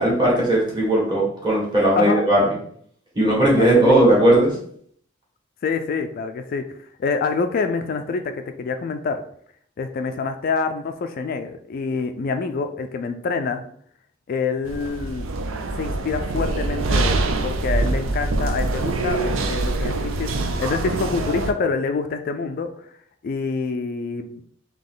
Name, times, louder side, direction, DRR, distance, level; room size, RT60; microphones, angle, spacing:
voice 1, 0.0-2.4 3.2-4.6, right 1 dB, 25° right, -5 dB, 1.8 m, -17 dB
voice 2, 3.6-4.1 5.6-9.2 9.8-13.7 14.3-15.3 15.8-22.7 23.2-24.4, left 4 dB, 50° left, 6 dB, 0.3 m, -26 dB
sound 1, 14.7-21.5, right 2 dB, 85° right, 0.5 m, -24 dB
3.9 x 2.9 x 3.7 m, 0.62 s
head